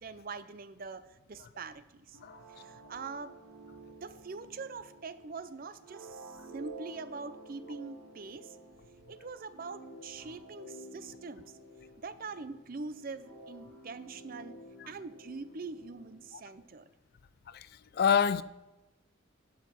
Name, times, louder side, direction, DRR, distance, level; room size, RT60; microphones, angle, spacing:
voice 1, 0.0-2.2 2.5-3.4 4.0-8.6 9.1-11.6 12.0-14.6 14.9-16.9, right 4 dB, 40° right, 0.5 m, -43 dB
sound 1, 2.1-16.7, right 2 dB, 90° right, 2.6 m, -51 dB
voice 2, 17.5-18.4, left 7 dB, 45° left, 0.3 m, -28 dB
11.0 x 6.3 x 5.6 m
head